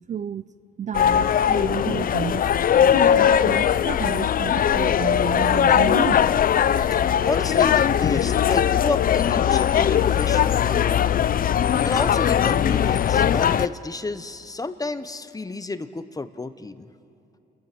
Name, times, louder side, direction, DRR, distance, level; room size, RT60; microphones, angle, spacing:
voice 1, 0.1-0.5 0.8-2.5 2.9-6.2, right 8 dB, 35° right, 0.4 m, -31 dB
sound 1, 0.9-13.7, left 9 dB, 45° left, 0.5 m, -20 dB
voice 2, 7.2-11.2 11.8-16.9, left 3 dB, 20° left, 1.0 m, -31 dB
29.5 x 14.5 x 6.1 m
cardioid pair, 90°, 20 cm